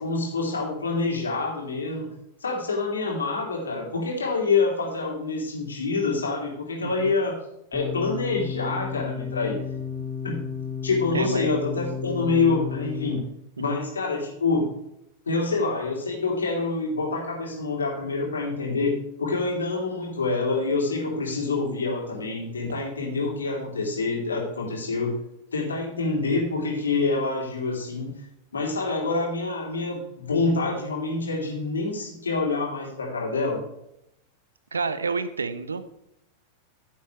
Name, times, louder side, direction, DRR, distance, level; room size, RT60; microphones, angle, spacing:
voice 1, 0.0-2.1 2.4-7.3 7.7-9.6 10.2-10.4 10.8-13.2 13.6-14.7 15.3-25.1 25.5-28.1 28.5-33.6, left 3 dB, 70° left, -2 dB, 3.7 m, -26 dB
voice 2, 6.8-7.1 11.1-11.5 13.6-13.8 34.7-35.9, right 4 dB, 75° right, 13 dB, 0.9 m, -29 dB
sound 1, 7.7-13.2, left 6 dB, 10° right, 4.2 m, -32 dB
15.0 x 7.6 x 3.5 m, 0.80 s
figure-of-eight pair, 90°, 0 cm